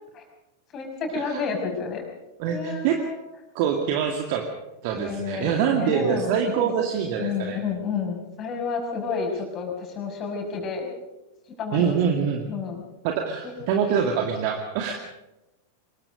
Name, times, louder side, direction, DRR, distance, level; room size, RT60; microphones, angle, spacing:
voice 1, 0.7-2.0 2.5-3.2 4.9-6.8 7.2-10.9 11.6-12.0 12.5-12.8 13.4-13.5 13.9-14.0, left 5 dB, 30° left, 2 dB, 6.3 m, -30 dB
voice 2, 2.4-3.0 3.5-4.4 4.8-7.6 11.7-12.5 13.0-14.9, right 8 dB, 45° right, 3 dB, 2.2 m, -25 dB
25.0 x 22.0 x 5.2 m, 0.99 s
figure-of-eight pair, 90°, 0 cm